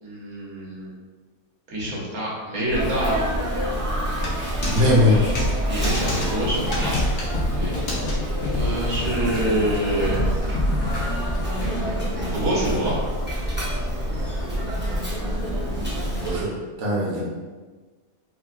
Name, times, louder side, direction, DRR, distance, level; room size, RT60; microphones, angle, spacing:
voice 1, 0.0-0.9 1.7-3.2 5.1-5.2 5.7-6.7 7.5-7.8 8.5-10.2 12.3-13.0, right 1 dB, 80° right, -5 dB, 1.3 m, -26 dB
Sneeze, 2.7-16.4, equal, 15° right, 0.3 m, -27 dB
sound 1, 4.2-4.8 5.4-5.5 5.8-6.3 6.7-7.3 7.9-8.1 9.0-9.1, left 1 dB, 80° left, 1.2 m, -30 dB
voice 2, 4.7-5.2 16.2-16.5 16.8-17.2, left 1 dB, 55° right, -5 dB, 0.9 m, -19 dB
sound 2, 5.3-11.7, left 1 dB, 55° left, 0.8 m, -29 dB
3.8 x 2.1 x 2.3 m, 1.4 s
omnidirectional pair, 1.5 m